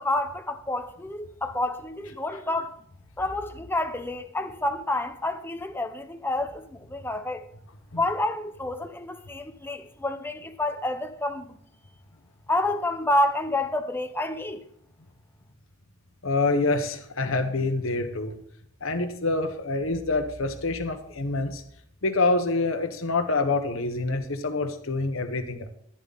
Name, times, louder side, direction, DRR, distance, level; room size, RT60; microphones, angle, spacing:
voice 1, 0.0-2.7 3.2-7.4 8.0-11.6 12.5-14.6, left 1 dB, 10° left, 1.0 m, -29 dB
voice 2, 16.2-18.3 18.8-21.6 22.0-25.7, left 3 dB, 70° left, 1.2 m, -26 dB
14.0 x 9.1 x 4.1 m
head